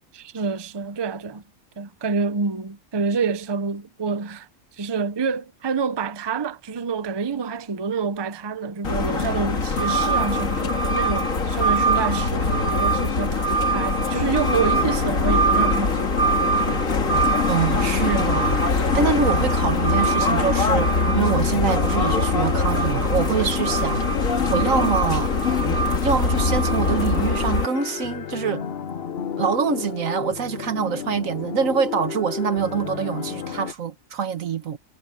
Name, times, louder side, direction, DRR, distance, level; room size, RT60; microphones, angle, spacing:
voice 1, 0.1-1.4 1.8-4.5 4.7-16.1 16.4-16.8 23.4-23.5, right 5 dB, 25° right, 0.6 m, -27 dB
sound 1, 8.8-27.7, left 1 dB, 80° left, 2.4 m, -22 dB
sound 2, 14.3-33.7, left 8 dB, 55° left, 1.0 m, -32 dB
voice 2, 17.5-24.0 24.3-25.3 26.0-28.6 29.4-34.8, right 6 dB, 80° right, 1.6 m, -25 dB
omnidirectional pair, 1.4 m